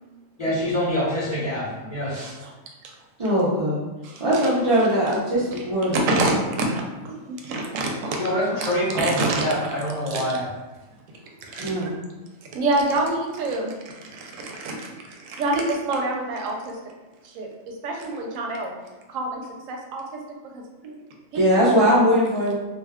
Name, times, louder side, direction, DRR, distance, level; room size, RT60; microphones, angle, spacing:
voice 1, 0.4-2.3 8.2-10.4 11.5-11.7 14.5-14.8, equal, 35° left, -9 dB, 0.9 m, -26 dB
voice 2, 2.1-2.5 2.8-2.9 4.0-4.5 5.9-8.2 8.6-8.7 8.9-9.7 10.1-10.2 11.4-11.9 12.5-13.7 14.0-16.8 17.2-17.5 17.8-18.7 19.1-19.4 19.7-20.0 20.5-20.6 21.3-21.5, right 2 dB, 80° right, 0 dB, 1.0 m, -27 dB
voice 3, 3.2-3.8 4.2-6.0 11.6-11.9 21.3-22.5, equal, 55° right, -9 dB, 0.3 m, -20 dB
2.5 x 2.2 x 3.4 m, 1.2 s
omnidirectional pair, 1.4 m